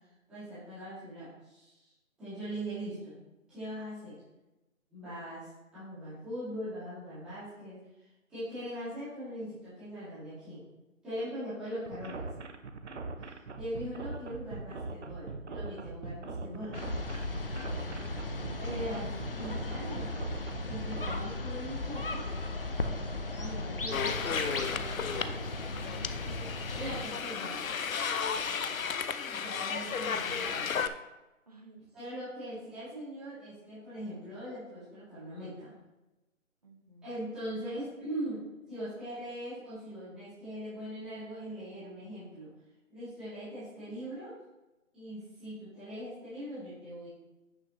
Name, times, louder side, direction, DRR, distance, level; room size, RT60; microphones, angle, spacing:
voice 1, 0.3-1.9 2.2-3.2 3.5-4.1 4.9-7.8 8.3-10.6 11.0-12.3 13.2-16.8 18.6-20.1 20.6-22.3 23.3-25.4 26.7-27.7 29.2-30.7 31.9-35.7 37.0-42.5 42.9-44.3 44.9-47.1, equal, ahead, -16 dB, 1.8 m, -41 dB
sound 1, 11.9-21.2, right 3 dB, 55° right, 0.8 m, -41 dB
sound 2, 16.7-27.0, left 2 dB, 45° left, 0.7 m, -36 dB
voice 2, 17.9-18.7 28.3-28.9 31.5-32.3 36.6-37.2, right 3 dB, 30° right, 2 dB, 1.0 m, -57 dB
sound 3, 23.9-30.9, left 6 dB, 80° left, 0.7 m, -34 dB
9.5 x 5.8 x 3.0 m, 1.0 s
hypercardioid pair, 175°, 41 cm